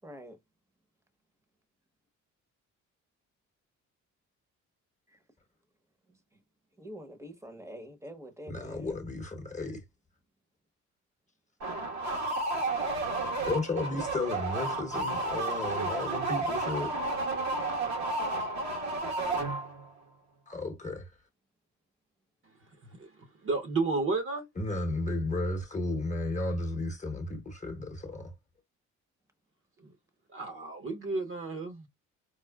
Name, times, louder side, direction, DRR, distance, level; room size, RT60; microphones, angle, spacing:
voice 1, 0.0-0.4 5.1-5.2 6.8-8.9, equal, 10° right, 0.9 m, -45 dB
voice 2, 8.5-9.8 13.5-16.9 20.5-21.1 24.6-28.3, left 2 dB, 25° left, 0.9 m, -33 dB
sound 1, 11.6-19.9, right 2 dB, 65° right, 1.2 m, -32 dB
voice 3, 23.4-24.5 30.3-31.9, right 3 dB, 45° right, 1.0 m, -31 dB
4.8 x 2.1 x 2.2 m
cardioid pair, 90°, 30 cm